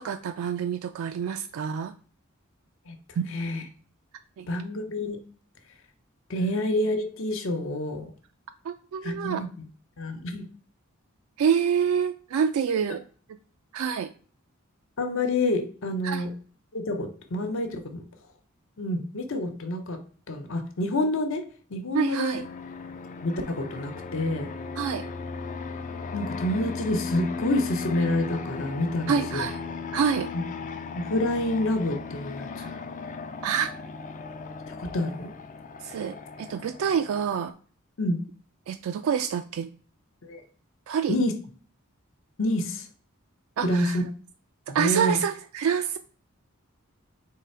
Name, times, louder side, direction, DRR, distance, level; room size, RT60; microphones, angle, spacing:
voice 1, 0.0-1.9 3.2-3.3 4.4-4.5 6.5-6.6 8.6-9.4 11.4-13.0 13.7-14.1 16.0-16.2 21.9-22.4 24.8-25.1 29.1-29.6 29.9-30.3 32.6-32.7 33.4-33.7 35.8-37.5 38.7-39.7 40.9-41.2 43.6-44.0 44.7-46.0, right 7 dB, 70° right, 8 dB, 0.3 m, -27 dB
voice 2, 2.9-3.6 4.5-5.2 6.3-8.1 9.0-9.5 10.0-10.5 15.0-16.3 16.7-18.0 18.8-20.0 20.3-22.4 23.2-24.5 26.1-29.5 30.3-30.4 30.9-32.8 34.7-35.3 38.0-38.2 40.2-40.4 41.1-41.3 42.4-42.9 43.6-44.0 44.7-45.2, left 1 dB, 65° left, 6 dB, 0.7 m, -28 dB
Fixed-wing aircraft airplane, 22.3-37.5, left 4 dB, 35° left, 0.4 m, -37 dB
3.8 x 3.2 x 4.3 m, 0.42 s
head